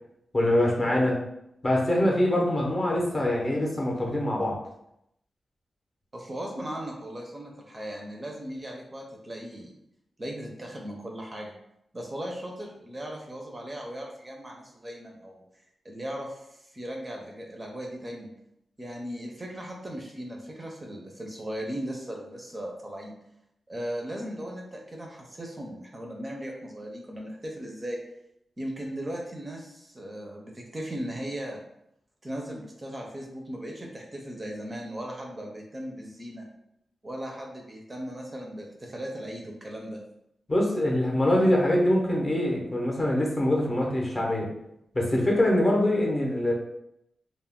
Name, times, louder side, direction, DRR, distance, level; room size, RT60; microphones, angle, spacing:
voice 1, 0.3-1.2 1.6-4.6 40.5-44.5 44.9-46.5, left 1 dB, 30° left, -2 dB, 0.6 m, -24 dB
voice 2, 6.1-9.8 10.2-11.5 11.9-15.4 15.8-18.3 18.8-23.1 23.7-28.0 28.6-31.6 32.2-36.5 37.0-40.0, equal, 25° right, 0 dB, 0.4 m, -37 dB
2.2 x 2.0 x 3.5 m, 0.80 s
wide cardioid pair, 110°, 0 cm